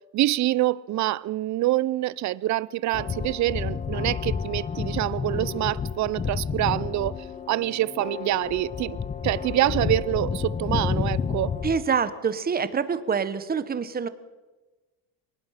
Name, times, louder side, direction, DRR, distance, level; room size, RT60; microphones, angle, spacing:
voice 1, 0.1-7.2 7.5-9.0 9.2-11.5, right 15 dB, 45° right, 0.6 m, -26 dB
sound 1, 2.9-11.8, left 6 dB, 20° left, 0.8 m, -30 dB
voice 2, 11.6-14.1, right 6 dB, 25° right, 1.1 m, -26 dB
23.5 x 19.5 x 5.8 m
cardioid pair, 135°, 39 cm